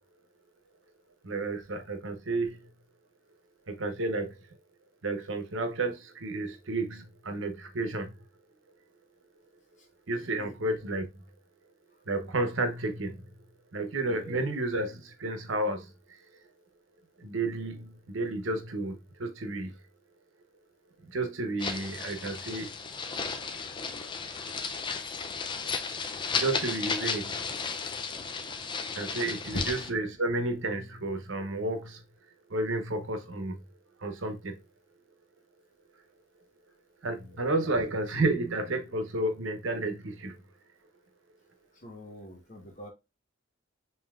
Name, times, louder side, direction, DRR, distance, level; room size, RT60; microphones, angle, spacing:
voice 1, 1.2-2.6 3.7-4.4 5.0-8.1 10.1-11.1 12.1-13.3 13.7-15.9 17.2-19.7 21.0-22.7 26.3-27.5 28.9-32.0 32.5-33.6 34.0-34.6 37.0-40.4, right 2 dB, 85° right, 0.9 m, -31 dB
voice 2, 10.1-10.5 14.1-14.4 28.9-29.0 37.1-37.3 37.6-37.7 41.8-42.9, equal, 40° left, 1.3 m, -46 dB
sound 1, 21.6-29.9, left 5 dB, 25° left, 0.4 m, -34 dB
5.5 x 2.8 x 2.4 m
head